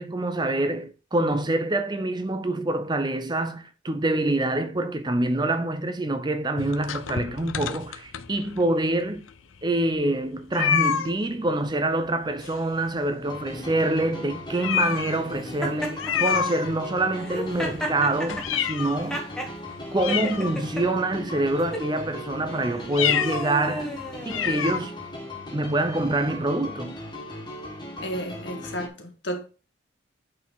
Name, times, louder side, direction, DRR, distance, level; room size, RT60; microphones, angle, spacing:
voice 1, 0.0-9.2 9.6-19.2 19.9-23.9 24.3-24.9 25.5-27.0, right 2 dB, 20° right, 0.6 m, -26 dB
sound 1, 6.6-8.7 9.3-9.4 9.6-9.7 10.5-11.2 12.4-13.0 13.3-13.4 13.9-14.0 14.5-15.3 16.0-17.1 17.5-19.1 19.6-19.7 19.9-21.0 21.5-21.8 22.8-23.5 23.8-23.9 24.3-24.8, left 8 dB, 85° left, 0.7 m, -28 dB
sound 2, 13.2-28.9, left 1 dB, 20° left, 1.8 m, -38 dB
Laughter, 15.6-16.3 17.2-19.5 20.1-20.8 21.6-21.9 22.6-24.8, equal, 5° left, 1.3 m, -33 dB
voice 2, 28.0-29.5, equal, 65° left, 1.9 m, -32 dB
8.7 x 4.3 x 4.0 m
head